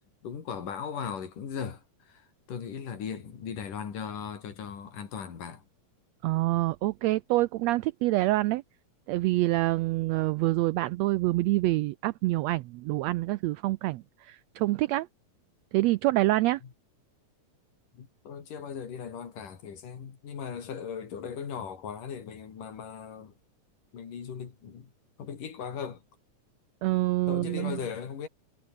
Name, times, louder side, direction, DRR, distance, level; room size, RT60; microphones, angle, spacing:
voice 1, 0.2-2.2 2.5-5.6 17.9-23.3 23.9-24.9 25.2-26.0 27.3-28.3, left 7 dB, 85° left, 4.8 m, -38 dB
voice 2, 6.2-8.6 9.1-15.1 15.7-16.6 26.8-27.8, right 18 dB, 90° right, 1.5 m, -26 dB
omnidirectional pair, 3.6 m